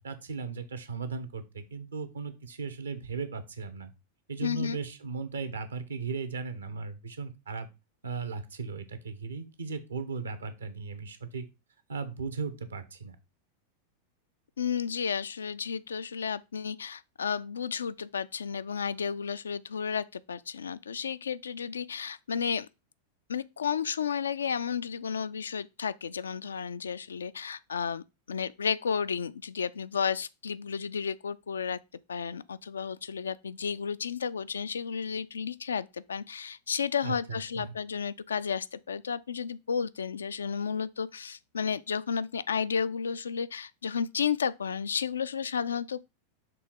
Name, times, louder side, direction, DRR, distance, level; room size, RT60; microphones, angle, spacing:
voice 1, 0.0-3.9 4.3-7.7 8.0-11.4 11.9-13.2 37.0-37.7, right 4 dB, 70° right, 0.9 m, -37 dB
voice 2, 4.4-4.8 14.6-22.7 23.3-31.8 32.1-46.0, left 6 dB, 70° left, 0.3 m, -32 dB
6.1 x 3.4 x 4.7 m
figure-of-eight pair, 90°, 0 cm